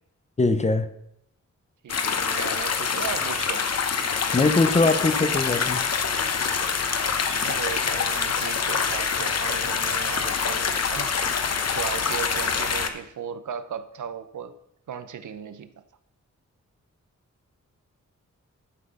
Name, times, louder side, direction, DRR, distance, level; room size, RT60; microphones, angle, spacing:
voice 1, 0.4-0.9 4.3-5.8, left 3 dB, 25° left, 11 dB, 0.6 m, -21 dB
voice 2, 1.8-3.7 7.2-11.1 11.7-14.5 14.9-15.8, right 8 dB, 85° right, 11 dB, 0.8 m, -36 dB
sound 1, 1.9-12.9, left 6 dB, 55° left, 0.9 m, -25 dB
11.5 x 6.0 x 5.4 m, 0.76 s
wide cardioid pair, 175°, 30 cm